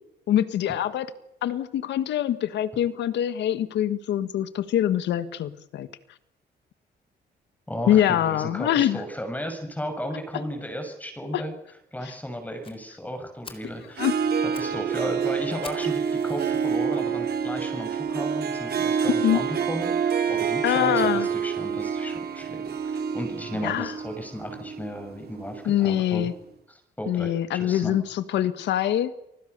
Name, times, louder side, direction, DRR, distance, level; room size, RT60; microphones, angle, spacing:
voice 1, 0.3-1.1 1.4-5.9 7.9-9.0 11.3-11.4 12.0-12.1 14.0-14.1 19.2-19.4 20.6-21.3 23.6-23.9 25.6-26.3 27.1-29.1, left 11 dB, 85° left, 12 dB, 1.6 m, -24 dB
voice 2, 7.7-11.5 11.9-14.1 14.4-26.2 26.7-27.9, equal, 10° left, 5 dB, 6.6 m, -35 dB
Fire, 12.6-12.8 13.2-13.3 13.4-13.7 14.3-14.8 15.0-15.1 15.6-17.0 17.5-17.6 18.2-18.3 18.6-18.7 19.0-19.1, left 4 dB, 30° left, 4.1 m, -45 dB
Harp, 13.9-25.8, right 7 dB, 60° right, 2.8 m, -27 dB
29.5 x 20.5 x 6.9 m, 0.82 s
cardioid pair, 95°, 18 cm